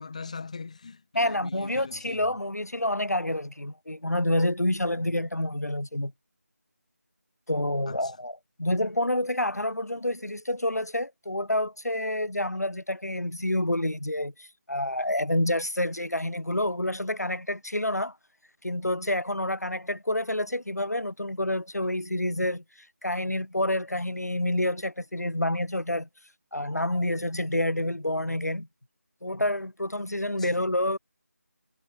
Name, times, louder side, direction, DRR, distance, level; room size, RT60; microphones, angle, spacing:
voice 1, 0.0-2.3 4.9-5.0 7.9-8.1 30.4-30.5, left 4 dB, 25° left, 1.3 m, -41 dB
voice 2, 1.1-6.1 7.5-18.1 18.6-22.6 23.0-26.1 26.5-28.7 29.2-31.0, left 1 dB, 85° left, 1.2 m, -28 dB
figure-of-eight pair, 165°, 8 cm